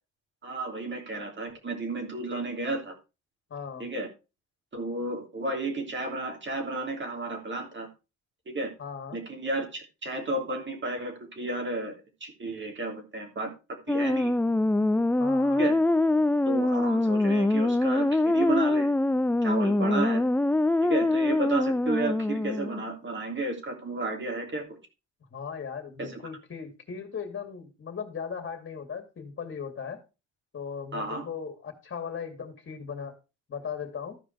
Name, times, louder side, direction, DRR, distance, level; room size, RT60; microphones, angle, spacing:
voice 1, 0.4-3.0 3.8-4.1 4.7-7.9 8.5-8.7 9.1-11.9 12.2-13.5 13.9-14.3 15.6-15.7 16.4-18.9 19.4-20.2 20.8-24.8 26.0-26.2 30.9-31.3, right 2 dB, 40° right, 3.1 m, -32 dB
voice 2, 3.5-3.9 8.8-9.2 15.2-15.7 25.3-30.0 30.5-33.1 33.5-34.2, left 6 dB, 40° left, 2.3 m, -38 dB
sound 1, 13.9-22.8, left 2 dB, 5° left, 0.4 m, -24 dB
14.0 x 5.0 x 4.5 m
cardioid pair, 90°, 30 cm